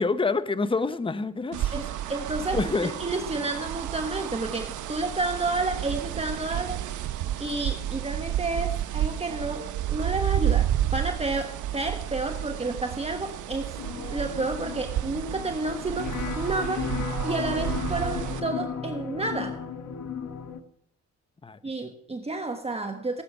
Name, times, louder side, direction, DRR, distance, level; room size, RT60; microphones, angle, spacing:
voice 1, 0.0-1.7 2.5-2.9 21.4-21.6, left 3 dB, 15° left, 13 dB, 0.9 m, -27 dB
sound 1, 1.5-18.4, right 12 dB, 80° right, 1.2 m, -31 dB
voice 2, 1.7-6.8 7.4-13.8 14.1-16.9 17.2-19.6 21.6-23.2, right 2 dB, 20° right, 5 dB, 1.3 m, -30 dB
sound 2, 13.8-20.6, left 6 dB, 70° left, 1.5 m, -34 dB
17.5 x 8.4 x 6.0 m, 0.71 s
cardioid pair, 90°, 30 cm